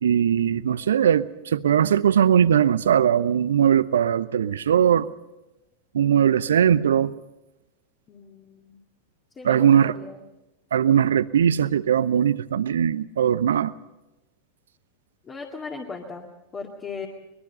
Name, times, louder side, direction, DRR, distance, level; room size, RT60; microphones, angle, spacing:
voice 1, 0.0-5.1 5.9-7.1 9.4-9.9 10.7-13.7, right 9 dB, 65° right, 0.7 m, -20 dB
voice 2, 8.1-8.8 9.4-10.2 15.2-17.1, left 4 dB, 20° left, 2.2 m, -38 dB
23.5 x 21.5 x 5.4 m
figure-of-eight pair, 90°, 0 cm